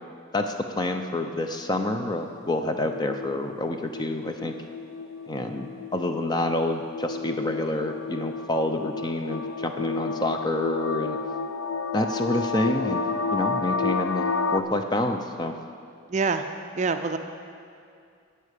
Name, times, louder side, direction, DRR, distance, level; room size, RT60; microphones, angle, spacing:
voice 1, 0.3-4.5 5.3-11.2 11.9-13.1 13.3-15.6, left 1 dB, 20° left, 6 dB, 0.5 m, -28 dB
sound 1, 2.6-14.6, left 4 dB, 80° left, 0.4 m, -31 dB
voice 2, 16.1-16.4 16.7-17.2, right 4 dB, 35° right, 7 dB, 0.4 m, -25 dB
12.0 x 5.7 x 8.1 m, 2.4 s
head